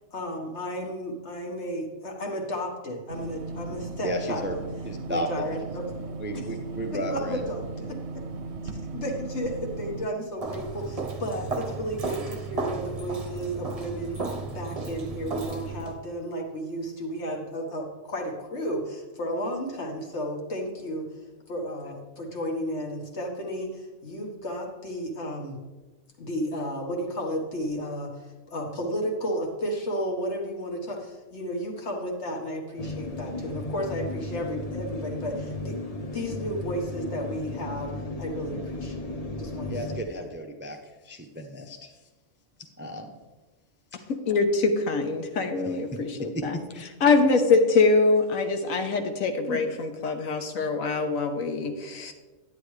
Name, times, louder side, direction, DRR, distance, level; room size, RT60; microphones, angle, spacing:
voice 1, 0.1-4.6 5.1-5.9 6.3-6.4 7.1-8.0 8.7-21.1 21.5-25.6 26.2-28.1 28.5-37.9 38.2-39.1 39.4-40.0, equal, 55° left, 1 dB, 1.7 m, -33 dB
sound 1, 3.1-10.1, right 3 dB, 65° right, 0.9 m, -37 dB
voice 2, 4.0-4.5 4.8-5.5 6.0-7.4 39.7-40.8 41.0-41.9 42.8-43.2 45.6-45.8 46.3-46.8 49.5-49.6, equal, 15° right, 4 dB, 0.5 m, -33 dB
Walk footsteps, 10.4-16.0, right 4 dB, 30° right, 0.8 m, -34 dB
sound 2, 32.8-40.0, left 2 dB, 35° left, 0.8 m, -35 dB
voice 3, 44.1-46.6 47.0-52.1, left 3 dB, 85° left, 6 dB, 1.3 m, -24 dB
10.0 x 9.3 x 3.2 m, 1.2 s
omnidirectional pair, 1.4 m